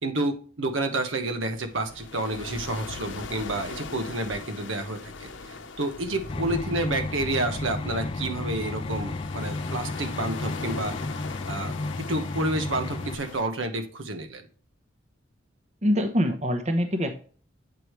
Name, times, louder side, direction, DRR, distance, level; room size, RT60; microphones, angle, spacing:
voice 1, 0.0-11.0 11.4-14.5, right 2 dB, 90° right, 6 dB, 1.1 m, -30 dB
sound 1, 1.4-13.4, left 4 dB, 70° left, 0.8 m, -40 dB
sound 2, 6.3-13.1, left 2 dB, 30° left, 0.3 m, -33 dB
voice 2, 15.8-17.2, equal, 35° right, 7 dB, 0.9 m, -24 dB
8.4 x 4.8 x 3.1 m, 0.41 s
head